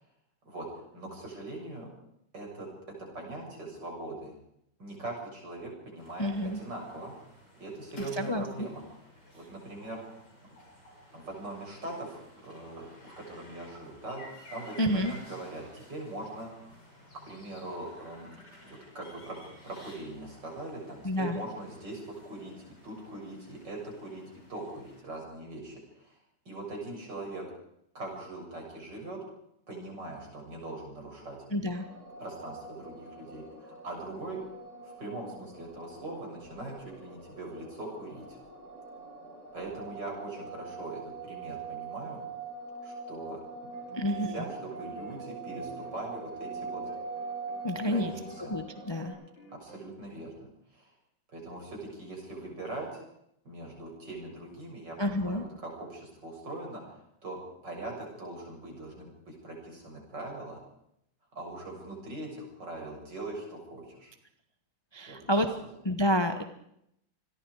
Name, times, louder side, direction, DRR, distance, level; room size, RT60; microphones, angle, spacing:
voice 1, 0.5-1.9 2.3-2.7 3.1-4.3 4.8-7.1 7.6-8.8 9.3-10.0 11.1-16.5 17.2-18.4 18.6-19.4 19.6-22.5 22.8-24.2 24.5-26.2 26.5-27.4 27.9-29.2 29.7-31.4 32.2-34.4 34.8-38.4 39.5-42.2 42.8-43.4 43.9-46.8 47.7-48.5 49.6-50.5 50.7-50.9 51.3-53.0 53.4-60.6 61.4-64.1 65.1-65.4, right 2 dB, 55° right, 0 dB, 7.7 m, -41 dB
sound 1, 6.0-25.0, left 1 dB, 50° left, 7.1 m, -54 dB
voice 2, 6.2-6.6 8.0-8.7 14.8-15.1 21.0-21.4 31.5-31.8 43.9-44.4 47.6-48.1 48.4-49.1 55.0-55.4 64.9-65.5 65.8-66.4, equal, 20° left, 7 dB, 0.9 m, -29 dB
sound 2, 31.7-49.1, right 4 dB, 35° right, 6.3 m, -43 dB
sound 3, 43.7-48.5 48.7-49.9, equal, 80° left, 7.8 m, -54 dB
28.0 x 21.5 x 4.8 m, 0.76 s
omnidirectional pair, 2.2 m